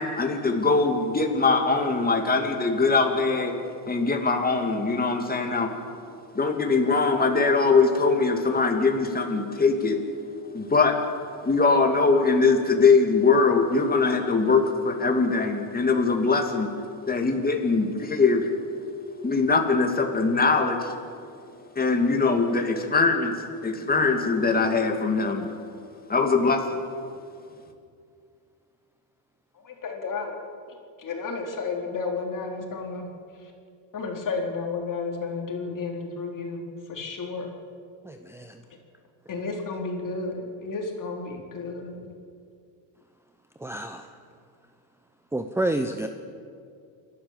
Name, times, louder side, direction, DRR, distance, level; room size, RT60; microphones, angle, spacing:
voice 1, 0.0-3.6 3.9-5.7 6.3-10.0 10.5-10.9 11.4-16.7 17.1-18.5 19.2-20.9 21.8-23.4 23.6-25.5 26.1-26.6, left 4 dB, 20° left, 3 dB, 2.7 m, -22 dB
voice 2, 29.6-30.4 30.7-33.1 33.9-37.5 39.3-42.1, left 4 dB, 40° left, 1 dB, 4.0 m, -32 dB
voice 3, 38.0-38.6 43.6-44.1 45.3-46.1, right 1 dB, 5° right, 7 dB, 0.9 m, -29 dB
28.5 x 12.5 x 7.6 m, 2.3 s
cardioid pair, 110°, 49 cm